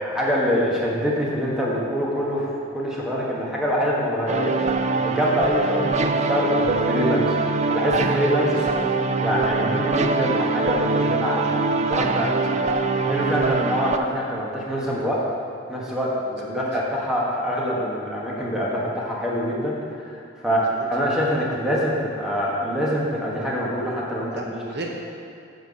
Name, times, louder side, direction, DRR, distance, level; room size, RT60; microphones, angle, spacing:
voice 1, 0.0-2.5 2.7-4.5 4.9-7.4 7.7-8.7 9.2-12.3 12.9-15.2 15.7-16.1 16.4-24.3, equal, 5° right, -5 dB, 1.4 m, -25 dB
sound 1, 4.3-14.0, right 3 dB, 35° right, 0.4 m, -23 dB
voice 2, 11.0-12.7 16.3-16.6 20.5-20.8 24.3-25.0, right 1 dB, 55° right, 0 dB, 0.8 m, -36 dB
9.1 x 4.6 x 7.0 m, 2.5 s
head